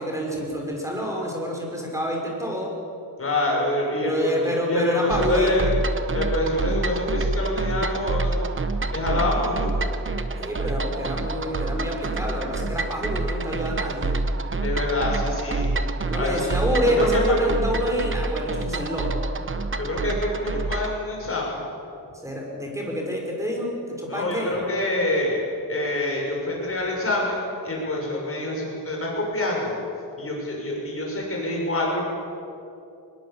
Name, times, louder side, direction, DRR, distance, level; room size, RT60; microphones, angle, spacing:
voice 1, 0.0-2.7 4.0-5.5 10.4-14.1 16.0-19.2 22.2-24.5, equal, 5° right, -1 dB, 5.2 m, -27 dB
voice 2, 3.2-5.7 6.1-8.4 8.9-9.7 14.6-15.7 16.1-16.6 17.0-17.2 19.8-21.6 24.1-25.4 25.7-29.8 30.2-32.1, left 1 dB, 35° left, -2 dB, 6.6 m, -26 dB
sound 1, 5.1-21.0, right 3 dB, 30° right, 1.0 m, -27 dB
23.5 x 20.5 x 7.3 m, 2.6 s
wide cardioid pair, 160°, 41 cm